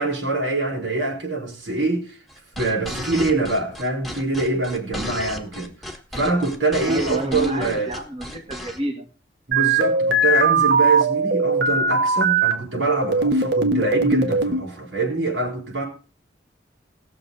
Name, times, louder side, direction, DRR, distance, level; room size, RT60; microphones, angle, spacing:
voice 1, 0.0-2.2 2.5-7.9 9.5-15.8, right 3 dB, 85° right, 4.9 m, -24 dB
sound 1, 2.3-8.8, left 1 dB, ahead, 1.3 m, -34 dB
voice 2, 6.9-9.1, right 1 dB, 30° right, 1.7 m, -29 dB
sound 2, 9.5-12.5 13.0-14.6, right 3 dB, 60° right, 1.5 m, -19 dB
19.5 x 6.9 x 4.1 m
head